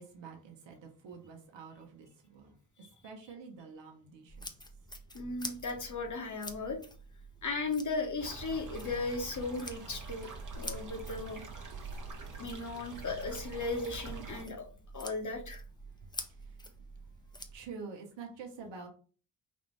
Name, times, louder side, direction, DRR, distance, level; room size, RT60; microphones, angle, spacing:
voice 1, 0.0-4.5 16.0-16.6 17.5-18.9, right 5 dB, 70° right, 1.0 m, -48 dB
sound 1, 4.3-17.6, equal, 10° left, 0.7 m, -48 dB
voice 2, 5.1-6.8 7.4-10.3 10.5-11.4 12.4-14.7 14.9-15.6, left 3 dB, 40° left, 1.1 m, -36 dB
sound 2, 8.2-14.4, right 3 dB, 40° right, 1.2 m, -45 dB
4.1 x 2.6 x 3.2 m
supercardioid pair, 45°, 45 cm